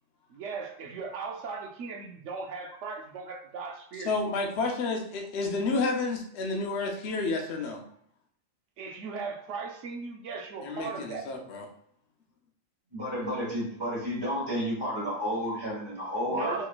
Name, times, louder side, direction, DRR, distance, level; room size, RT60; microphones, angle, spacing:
voice 1, 0.3-4.5 8.8-11.3 16.3-16.7, right 5 dB, 70° right, 2 dB, 0.9 m, -38 dB
voice 2, 4.1-7.8 10.6-11.6, left 3 dB, 65° left, 2 dB, 0.8 m, -30 dB
voice 3, 12.9-16.6, equal, 20° right, -6 dB, 1.5 m, -31 dB
4.2 x 3.0 x 2.4 m, 0.67 s
omnidirectional pair, 1.4 m